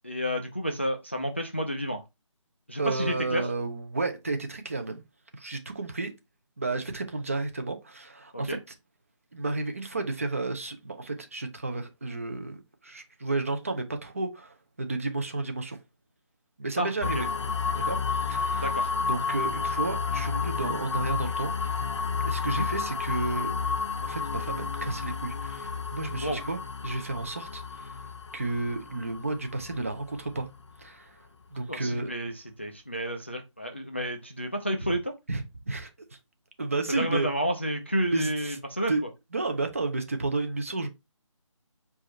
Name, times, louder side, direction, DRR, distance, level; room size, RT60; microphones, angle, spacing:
voice 1, 0.0-2.0 2.7-3.5 8.3-8.6 16.8-16.9 18.6-18.9 22.4-22.7 26.2-26.4 31.7-32.3 32.6-35.1 36.9-38.9, equal, 20° left, 0.4 m, -30 dB
voice 2, 2.8-5.0 5.4-6.1 6.6-8.6 9.3-15.8 16.6-17.3 17.7-18.7 19.1-21.9 22.2-23.5 24.0-28.0 28.3-30.5 30.8-31.2 31.5-32.1 35.3-35.9 36.6-37.3 38.1-38.6 38.9-39.0 39.3-40.9, right 3 dB, 25° right, 0.6 m, -32 dB
sound 1, 17.0-30.8, left 5 dB, 60° left, 0.6 m, -31 dB
4.8 x 2.5 x 4.2 m
figure-of-eight pair, 175°, 17 cm